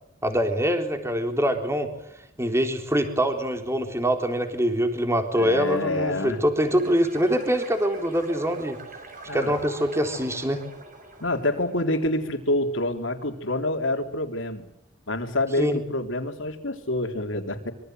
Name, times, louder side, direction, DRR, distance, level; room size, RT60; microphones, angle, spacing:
voice 1, 0.2-1.9 2.4-8.8 9.3-10.6 15.6-15.8, equal, 15° right, 6 dB, 3.6 m, -24 dB
voice 2, 5.3-6.4 9.3-9.6 11.2-14.7 15.1-17.7, left 1 dB, 80° left, 5 dB, 3.8 m, -27 dB
sound 1, 6.7-12.4, right 2 dB, 45° right, 7.0 m, -43 dB
25.5 x 24.5 x 8.1 m, 0.78 s
head